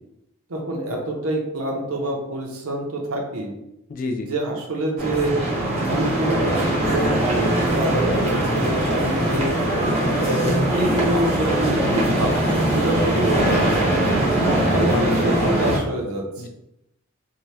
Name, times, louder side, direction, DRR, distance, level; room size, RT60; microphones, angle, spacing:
voice 1, 0.5-3.5 4.2-5.4 5.9-9.5 10.2-14.0 14.7-16.5, right 1 dB, 75° right, 1 dB, 0.6 m, -26 dB
voice 2, 3.9-4.3 14.9-15.4 16.4-16.5, left 2 dB, 40° left, 6 dB, 0.3 m, -29 dB
sound 1, 5.0-15.8, right 1 dB, 30° right, 0.7 m, -21 dB
2.8 x 2.2 x 3.2 m, 0.86 s
head